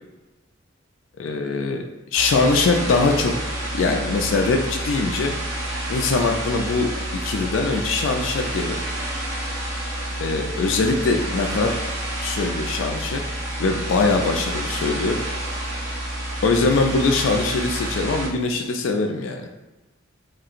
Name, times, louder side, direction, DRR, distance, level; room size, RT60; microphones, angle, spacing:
voice 1, 1.2-1.8 2.1-3.3 3.7-5.3 5.9-8.8 10.2-11.7 12.2-13.2 13.6-15.5 16.4-19.5, left 3 dB, 70° left, 3 dB, 0.3 m, -22 dB
sound 1, 2.1-18.3, right 1 dB, 75° right, 1.1 m, -29 dB
3.1 x 2.8 x 2.5 m, 1.1 s
head